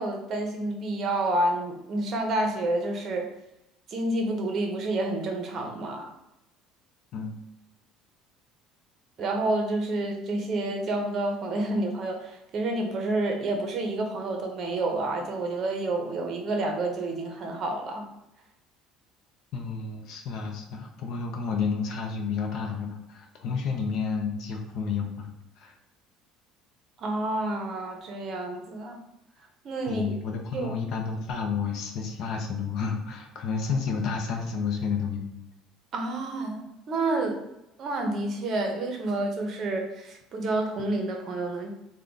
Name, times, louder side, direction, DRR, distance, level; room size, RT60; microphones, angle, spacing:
voice 1, 0.0-3.3 3.9-6.1 9.2-18.1 27.0-29.0 29.6-30.0 30.5-30.7 35.9-37.4 37.8-41.7, right 2 dB, 40° right, 3 dB, 0.7 m, -29 dB
voice 2, 19.5-25.3 25.6-25.7 29.9-35.3, left 5 dB, 50° left, 2 dB, 0.6 m, -31 dB
3.4 x 2.2 x 3.8 m, 0.89 s
cardioid pair, 155°, 0 cm